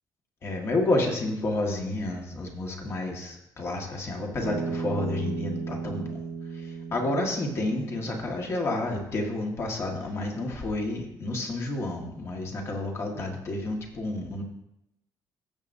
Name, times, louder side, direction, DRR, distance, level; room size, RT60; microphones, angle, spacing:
voice 1, 0.4-6.2 6.5-14.4, left 2 dB, 35° left, 1 dB, 1.7 m, -30 dB
Bass guitar, 4.4-8.7, right 5 dB, 50° right, 1.1 m, -35 dB
16.0 x 7.5 x 2.7 m, 0.83 s
cardioid pair, 165°, 8 cm